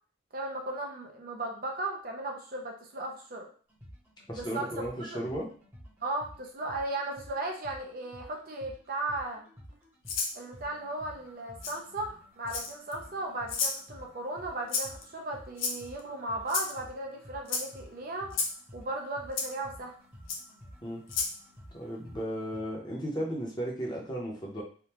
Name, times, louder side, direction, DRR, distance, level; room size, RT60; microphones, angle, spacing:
voice 1, 0.3-3.5 4.4-5.2 6.0-9.5 10.3-18.4 18.7-19.9, right 2 dB, 45° right, 1 dB, 0.5 m, -36 dB
sound 1, 3.7-22.6, equal, 10° right, 1.0 m, -52 dB
voice 2, 4.3-5.5 20.8-21.1 21.7-24.6, equal, 20° left, -3 dB, 0.8 m, -35 dB
Rattle (instrument), 10.1-10.4 11.6-11.7 12.5-12.9 13.5-13.8 14.7-15.0 15.6-16.0 16.5-16.7 17.5-17.6 18.3-18.5 19.4-19.5 20.3-20.4 21.1-21.3, left 4 dB, 75° left, 0.7 m, -31 dB
3.5 x 2.3 x 2.9 m, 0.42 s
head